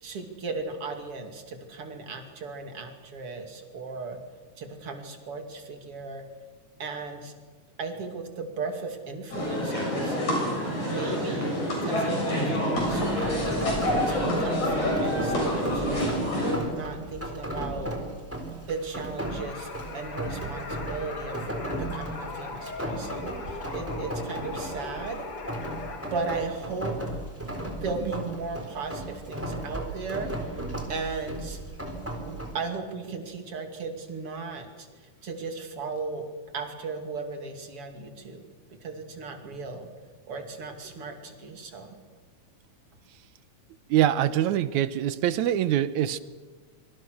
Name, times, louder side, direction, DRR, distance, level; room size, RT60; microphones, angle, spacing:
voice 1, 0.0-4.2 4.6-6.2 6.8-7.3 7.8-10.2 10.9-13.6 14.0-17.9 18.6-21.5 21.8-25.3 26.1-27.0 27.8-30.3 30.9-31.6 32.3-34.9 35.2-36.3 36.5-38.4 38.7-39.9 40.3-42.0, right 4 dB, 45° right, 5 dB, 3.4 m, -36 dB
sound 1, 9.3-16.5, left 1 dB, 65° left, 8.6 m, -27 dB
Rain, 12.8-32.5, right 1 dB, 5° right, 3.6 m, -36 dB
sound 2, 19.2-26.4, left 3 dB, 45° left, 3.3 m, -39 dB
voice 2, 43.9-46.2, right 11 dB, 70° right, 14 dB, 2.2 m, -24 dB
25.5 x 24.5 x 6.4 m, 1.4 s
omnidirectional pair, 3.6 m